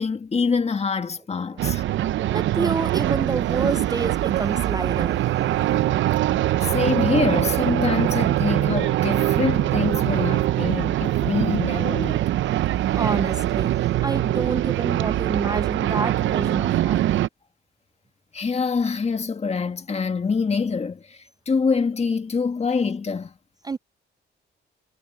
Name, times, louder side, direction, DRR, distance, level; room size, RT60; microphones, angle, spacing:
voice 1, 0.0-1.8 6.7-12.2 18.3-21.0 21.5-23.3, left 5 dB, 30° left, 1.9 m, -25 dB
sound 1, 1.6-17.3, right 14 dB, 75° right, 0.7 m, -23 dB
voice 2, 1.9-5.4 12.9-13.8 14.0-17.1 23.6-23.8, right 4 dB, 20° right, 0.4 m, -28 dB
Livestock farm animals working animals, 2.8-10.1, left 11 dB, 75° left, 3.9 m, -48 dB
cardioid pair, 90°, 20 cm